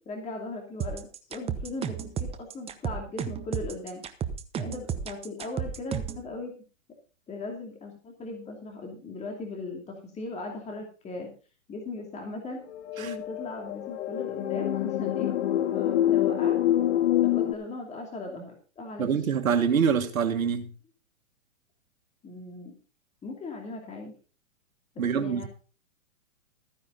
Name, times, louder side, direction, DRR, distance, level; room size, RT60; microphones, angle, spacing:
voice 1, 0.0-4.0 4.6-6.5 7.3-11.3 11.7-12.6 13.0-15.4 15.7-16.6 17.2-19.1 22.2-22.7 23.2-24.1 24.9-25.5, left 3 dB, 15° left, 2.7 m, -38 dB
sound 1, 0.8-6.2, right 8 dB, 15° right, 0.9 m, -33 dB
sound 2, 12.7-17.5, left 12 dB, 55° left, 1.5 m, -26 dB
voice 2, 19.0-20.7 25.0-25.5, right 7 dB, 85° right, 1.7 m, -25 dB
14.5 x 9.9 x 3.9 m
hypercardioid pair, 130°, 40 cm